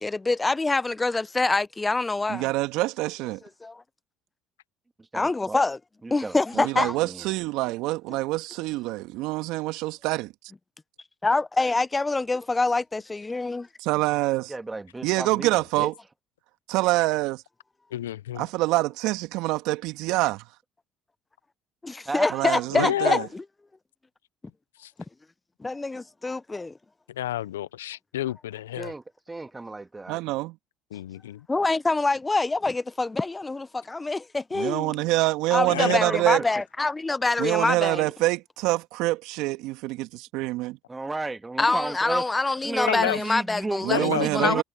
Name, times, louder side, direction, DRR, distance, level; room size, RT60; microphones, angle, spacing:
voice 1, 0.0-2.5 3.6-3.8 5.1-5.8 6.1-6.9 11.2-13.7 21.8-23.4 25.6-26.7 31.5-35.0 35.5-38.1 41.6-44.6, left 3 dB, 20° left, 0.9 m, -25 dB
voice 2, 2.3-3.4 6.6-10.3 13.8-14.5 15.0-15.9 16.7-17.4 18.4-20.4 22.3-23.2 30.1-30.6 34.5-36.4 37.4-40.7 43.8-44.6, right 20 dB, 70° right, 1.9 m, -26 dB
voice 3, 5.0-5.6 6.0-7.3 14.5-15.9 22.1-22.7 28.8-30.2 35.7-36.5 40.9-42.2 42.6-44.6, right 3 dB, 20° right, 2.0 m, -34 dB
voice 4, 17.9-18.4 22.7-23.3 27.1-28.9 30.9-31.5 35.7-36.0 42.9-43.2 43.9-44.6, left 12 dB, 85° left, 0.9 m, -29 dB
hypercardioid pair, 60°, 0 cm